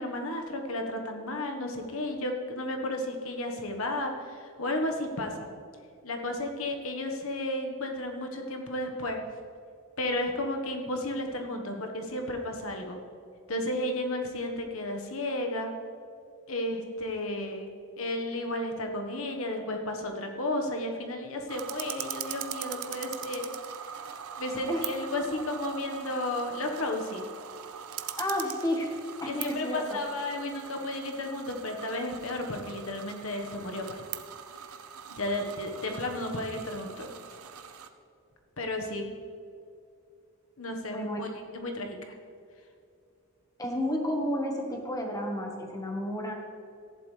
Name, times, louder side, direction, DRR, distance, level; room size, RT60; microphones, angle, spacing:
voice 1, 0.0-5.5 6.0-9.2 10.0-13.0 13.5-15.7 16.5-17.7 18.0-23.5 23.9-24.0 24.4-27.3 29.3-34.0 35.1-37.1 38.6-39.1 40.6-42.1, left 1 dB, 75° left, 3 dB, 1.4 m, -33 dB
sound 1, 21.5-37.9, right 9 dB, 85° right, 0.7 m, -41 dB
voice 2, 28.2-28.9 29.2-30.0 40.9-41.2 43.6-46.3, equal, 15° left, 1 dB, 1.4 m, -31 dB
14.5 x 11.0 x 3.3 m, 2.4 s
head